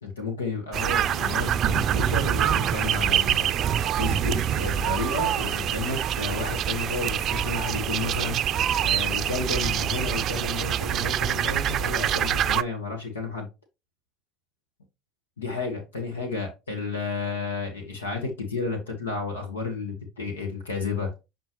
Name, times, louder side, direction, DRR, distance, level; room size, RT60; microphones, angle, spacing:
voice 1, 0.0-3.5 4.0-8.5 8.8-13.5 15.4-21.1, left 4 dB, 90° left, 1.5 m, -32 dB
sound 1, 0.7-12.6, right 10 dB, 50° right, 0.4 m, -25 dB
7.3 x 4.4 x 3.1 m
hypercardioid pair, 65°, 0 cm